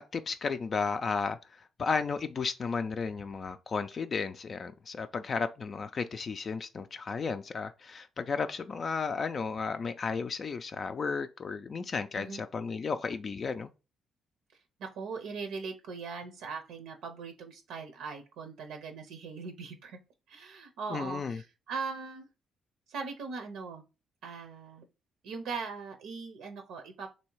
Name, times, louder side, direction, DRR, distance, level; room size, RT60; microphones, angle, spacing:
voice 1, 0.0-13.7 20.9-21.4, left 5 dB, 45° left, 0.3 m, -34 dB
voice 2, 14.8-20.0 20.3-22.3 22.9-23.8 24.2-24.9 25.2-27.1, right 4 dB, 90° right, 0.7 m, -40 dB
3.1 x 2.7 x 4.5 m
cardioid pair, 90°, 0 cm